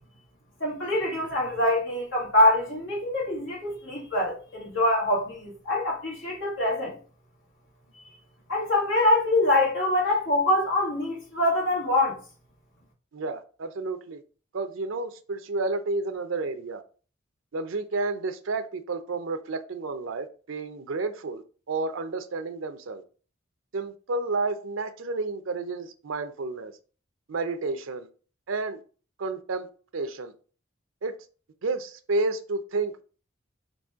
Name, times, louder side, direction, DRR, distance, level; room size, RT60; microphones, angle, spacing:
voice 1, 0.6-7.0 8.5-12.2, left 1 dB, 65° left, 2.2 m, -24 dB
voice 2, 13.1-14.2 14.5-16.8 17.5-23.0 23.7-26.7 27.3-28.1 28.5-28.8 29.2-30.3 31.0-31.2 31.6-33.0, right 3 dB, 80° right, 0.6 m, -31 dB
4.1 x 3.1 x 3.5 m
head